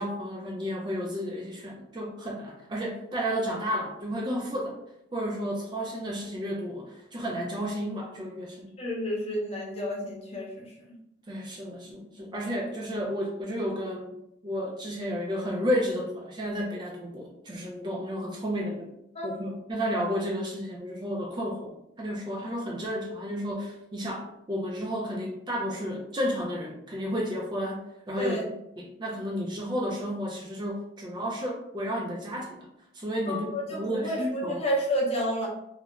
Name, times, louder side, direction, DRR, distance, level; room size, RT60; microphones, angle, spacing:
voice 1, 0.0-4.8 5.1-8.7 11.3-14.1 14.4-18.9 19.2-21.7 22.0-32.6 32.9-34.6, equal, 25° right, -2 dB, 0.3 m, -32 dB
voice 2, 8.8-10.7 19.1-19.3 28.2-28.4 33.3-35.5, equal, 30° left, -3 dB, 0.6 m, -30 dB
2.3 x 2.0 x 2.9 m, 0.80 s
head